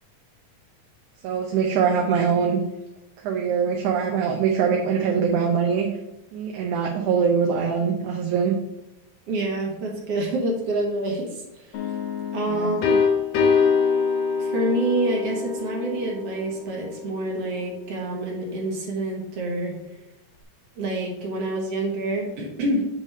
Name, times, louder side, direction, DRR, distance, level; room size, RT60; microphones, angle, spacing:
voice 1, 1.2-2.6 3.2-5.9 6.3-8.6 12.5-12.7, right 6 dB, 75° right, 0 dB, 2.1 m, -23 dB
voice 2, 9.3-11.9 12.3-12.9 14.4-19.8 20.8-22.9, right 1 dB, 60° right, -1 dB, 1.9 m, -27 dB
sound 1, 11.7-17.4, left 5 dB, 70° left, 2.1 m, -24 dB
7.3 x 3.3 x 5.4 m, 0.92 s
omnidirectional pair, 3.7 m